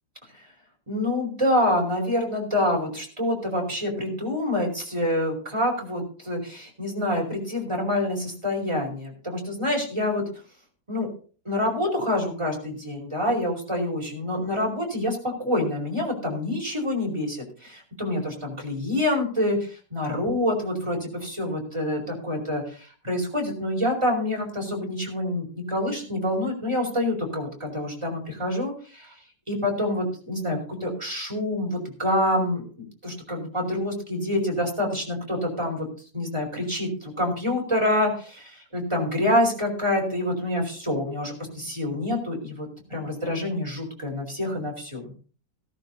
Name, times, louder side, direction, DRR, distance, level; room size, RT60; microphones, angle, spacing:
voice 1, 0.9-10.2 10.9-11.1 11.4-22.6 23.0-29.1 29.5-35.9 36.1-45.1, left 1 dB, 15° right, -1 dB, 4.7 m, -27 dB
16.5 x 14.0 x 2.8 m, 0.39 s
omnidirectional pair, 1.9 m